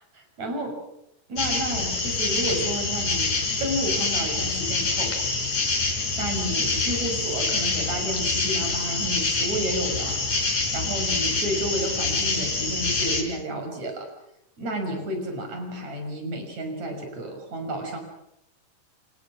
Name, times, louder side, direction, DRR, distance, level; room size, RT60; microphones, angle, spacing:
voice 1, 0.1-0.8 1.3-5.2 5.8-10.2 10.7-14.1 14.6-18.0, right 1 dB, 55° right, 4 dB, 7.2 m, -31 dB
sound 1, 1.4-13.2, left 3 dB, 60° left, 5.2 m, -26 dB
28.5 x 28.0 x 6.2 m, 0.80 s
omnidirectional pair, 3.9 m